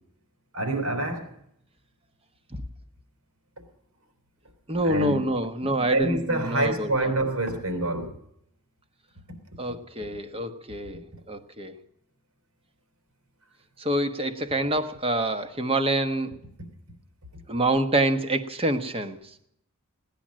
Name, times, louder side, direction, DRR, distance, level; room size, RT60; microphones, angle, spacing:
voice 1, 0.5-1.3 4.8-5.2 5.7-8.2, right 2 dB, 85° right, 5 dB, 4.1 m, -26 dB
voice 2, 4.7-7.1 9.6-11.8 13.8-16.3 17.5-19.2, right 1 dB, 25° right, 9 dB, 1.1 m, -27 dB
17.5 x 10.5 x 7.5 m, 0.75 s
head